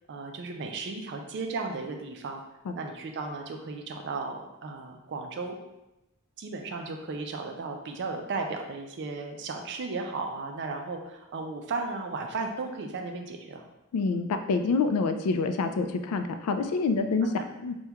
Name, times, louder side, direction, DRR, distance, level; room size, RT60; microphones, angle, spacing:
voice 1, 0.1-2.4 2.7-5.6 6.4-13.6 17.4-17.5, right 3 dB, 55° right, 4 dB, 0.4 m, -35 dB
voice 2, 13.9-17.3 17.6-17.7, left 4 dB, 85° left, 8 dB, 0.3 m, -27 dB
2.9 x 2.2 x 3.4 m, 0.93 s
head